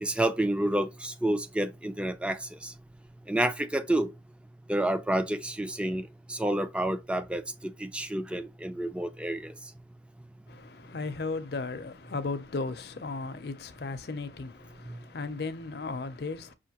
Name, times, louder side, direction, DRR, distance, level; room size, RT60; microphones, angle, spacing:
voice 1, 0.0-2.7 3.3-4.1 4.7-9.5, right 1 dB, 5° right, 0.3 m, -29 dB
voice 2, 10.5-16.5, left 3 dB, 60° left, 0.5 m, -36 dB
5.6 x 2.5 x 2.8 m
head